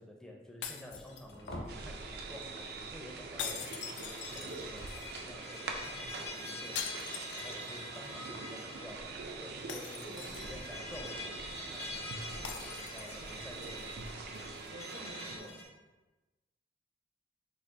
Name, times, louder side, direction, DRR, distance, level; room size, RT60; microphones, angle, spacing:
voice 1, 0.0-3.8 4.1-6.9 7.3-9.2 9.4-14.1, left 1 dB, 5° left, -1 dB, 0.4 m, -51 dB
sound 1, 0.6-1.7 3.4-5.0 6.8-8.0 8.3-8.4 9.7-10.8 12.4-13.4, left 8 dB, 85° left, 0.4 m, -43 dB
sound 2, 0.9-1.7 3.5-15.6, left 2 dB, 60° left, 0.8 m, -47 dB
sound 3, 1.7-15.4, right 3 dB, 60° right, 0.4 m, -44 dB
voice 2, 10.0-10.6 14.7-15.6, right 1 dB, 75° right, 0 dB, 0.7 m, -49 dB
3.9 x 2.3 x 3.3 m, 1.1 s
head